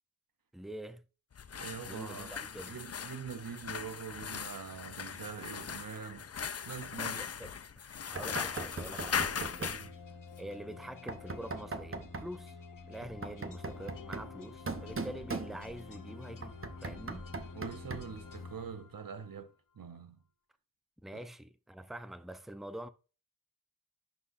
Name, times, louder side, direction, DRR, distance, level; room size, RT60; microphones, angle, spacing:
voice 1, 0.5-1.0 1.9-2.8 7.0-9.8 10.4-12.6 12.9-17.3 21.0-22.9, right 1 dB, ahead, 0.6 m, -46 dB
sound 1, 1.3-9.9, left 7 dB, 45° left, 0.4 m, -39 dB
voice 2, 1.5-7.3 9.6-9.9 17.5-20.2 21.1-21.3, right 6 dB, 85° right, 0.7 m, -44 dB
Knock, 8.2-9.9 11.1-12.4 13.0-15.9 16.4-18.2, right 3 dB, 40° right, 0.8 m, -41 dB
sound 2, 8.7-19.4, left 4 dB, 70° left, 0.8 m, -49 dB
11.0 x 4.2 x 2.5 m
wide cardioid pair, 40°, 33 cm